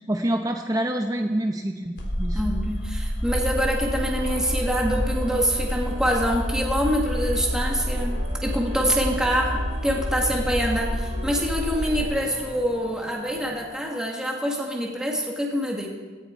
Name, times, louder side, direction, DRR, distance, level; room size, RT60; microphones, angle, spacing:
voice 1, 0.1-2.7, right 1 dB, 20° right, 4 dB, 0.7 m, -27 dB
sound 1, 2.0-12.0, equal, 65° left, 3.7 m, -28 dB
voice 2, 2.3-15.9, equal, 5° right, -1 dB, 1.7 m, -25 dB
sound 2, 3.3-13.6, right 1 dB, 60° right, 3.2 m, -41 dB
16.5 x 14.5 x 4.5 m, 1.4 s
head